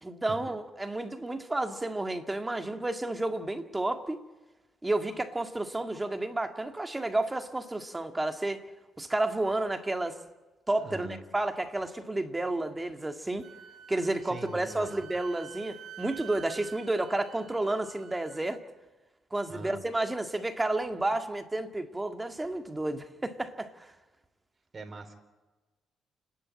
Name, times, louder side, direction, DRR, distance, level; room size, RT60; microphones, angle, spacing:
voice 1, 0.0-4.2 4.8-8.6 9.0-10.2 10.7-13.5 13.9-18.6 19.3-23.9, right 2 dB, 15° right, 1.9 m, -31 dB
voice 2, 10.8-11.2 14.2-14.9 19.5-19.8 24.7-25.1, right 3 dB, 35° right, 3.6 m, -42 dB
Wind instrument woodwind instrument, 13.4-18.6, right 9 dB, 65° right, 1.7 m, -49 dB
29.5 x 11.0 x 9.7 m
cardioid pair, 90°, 0 cm